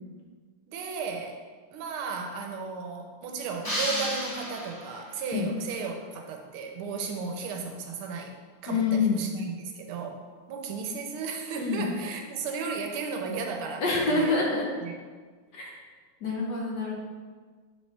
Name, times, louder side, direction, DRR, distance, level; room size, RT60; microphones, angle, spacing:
voice 1, 0.7-1.4 1.7-10.2 10.5-14.4 14.8-14.9, right 5 dB, 80° right, 3 dB, 1.5 m, -35 dB
sound 1, 3.6-5.2, equal, 25° left, 0.5 m, -32 dB
voice 2, 8.7-9.2 11.6-11.9 13.8-14.7 15.5-15.8 16.2-16.9, left 4 dB, 60° left, -2 dB, 1.3 m, -26 dB
6.9 x 4.3 x 3.2 m, 1.5 s
omnidirectional pair, 2.4 m